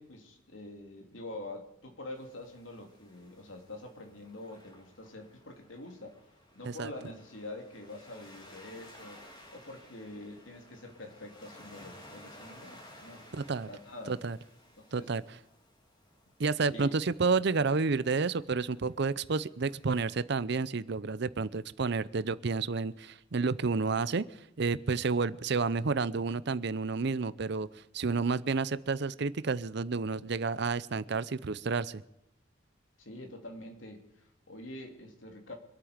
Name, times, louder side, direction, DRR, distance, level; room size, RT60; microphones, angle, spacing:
voice 1, 0.0-6.2 6.5-13.2 13.7-14.2 14.8-15.1 16.6-16.9 33.0-35.5, left 2 dB, 85° left, 3 dB, 3.0 m, -46 dB
Waves surf, 2.1-20.0, left 1 dB, 25° left, 3.0 m, -56 dB
voice 2, 13.3-13.7 14.1-14.4 14.9-15.2 16.4-27.7 27.9-32.0, right 4 dB, 60° right, 17 dB, 0.6 m, -30 dB
25.5 x 8.8 x 5.1 m, 0.88 s
head